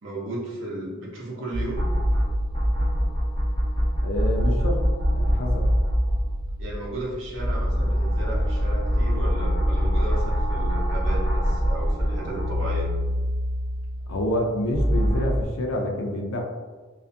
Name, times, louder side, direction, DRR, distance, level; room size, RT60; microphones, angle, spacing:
voice 1, 0.0-1.9 6.6-13.1, right 1 dB, 60° right, -4 dB, 0.7 m, -34 dB
sound 1, 1.5-7.0 7.3-15.4, equal, 20° left, 1.2 m, -24 dB
voice 2, 4.0-5.7 14.1-16.4, left 1 dB, 75° left, 1 dB, 0.4 m, -28 dB
2.4 x 2.3 x 2.5 m, 1.4 s
head